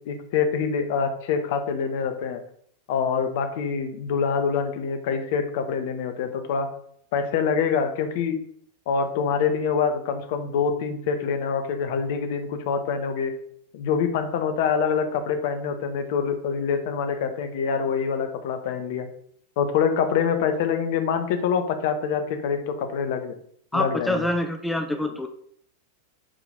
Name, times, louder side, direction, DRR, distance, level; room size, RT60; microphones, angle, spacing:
voice 1, 0.0-2.4 2.9-6.7 7.1-8.4 8.9-13.3 13.7-19.1 19.6-23.3 23.7-24.2, left 6 dB, 50° left, 7 dB, 1.2 m, -25 dB
voice 2, 23.7-25.3, left 1 dB, 5° left, 5 dB, 0.8 m, -26 dB
7.6 x 5.0 x 5.2 m, 0.64 s
figure-of-eight pair, 90°, 0 cm